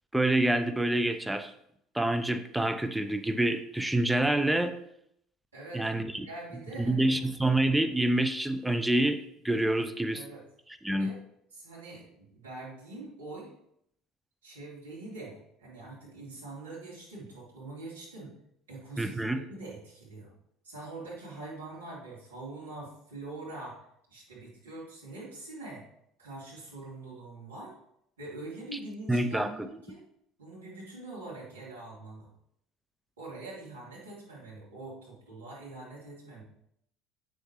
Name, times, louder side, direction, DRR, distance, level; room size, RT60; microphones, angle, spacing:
voice 1, 0.1-1.5 1.9-4.8 5.7-6.3 6.8-10.2 10.7-11.1 19.0-19.4 29.1-29.7, right 1 dB, 5° right, 9 dB, 0.6 m, -27 dB
voice 2, 5.5-5.8 6.2-7.1 10.1-10.4 11.0-11.2 11.5-13.5 14.4-18.3 18.7-20.3 20.6-25.8 26.2-27.7 28.2-30.0 30.4-32.3 33.2-36.4, right 2 dB, 90° right, -6 dB, 2.6 m, -44 dB
8.5 x 6.4 x 3.2 m, 0.74 s
hypercardioid pair, 65°, 0 cm